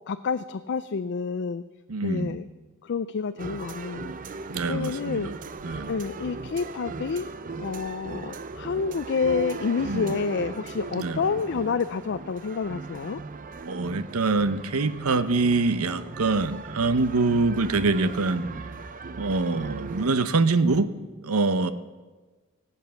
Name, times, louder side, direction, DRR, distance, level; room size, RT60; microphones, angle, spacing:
voice 1, 0.1-1.6 2.0-2.5 2.8-4.1 4.7-5.3 5.9-7.3 7.6-13.2, left 5 dB, 55° left, 11 dB, 0.4 m, -28 dB
voice 2, 1.9-2.4 4.5-5.4 5.6-5.9 9.8-10.2 10.9-11.2 13.7-18.4 19.2-20.9 21.2-21.7, right 3 dB, 90° right, 12 dB, 0.8 m, -24 dB
sound 1, 3.4-20.1, right 4 dB, 40° right, 0.6 m, -38 dB
18.0 x 8.3 x 7.0 m, 1.3 s
head